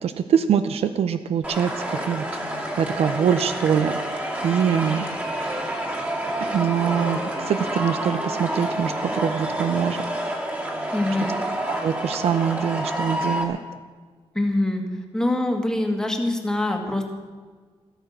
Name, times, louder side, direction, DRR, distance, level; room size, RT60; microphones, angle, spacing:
voice 1, 0.0-2.3 2.8-5.1 6.4-10.0 11.7-13.6, right 8 dB, 80° right, 10 dB, 0.7 m, -24 dB
sound 1, 1.4-13.4, right 1 dB, 15° right, 2.4 m, -28 dB
voice 2, 10.9-11.3 14.3-17.0, left 1 dB, 5° left, 3 dB, 1.8 m, -24 dB
14.0 x 13.5 x 6.6 m, 1.5 s
wide cardioid pair, 165°, 10 cm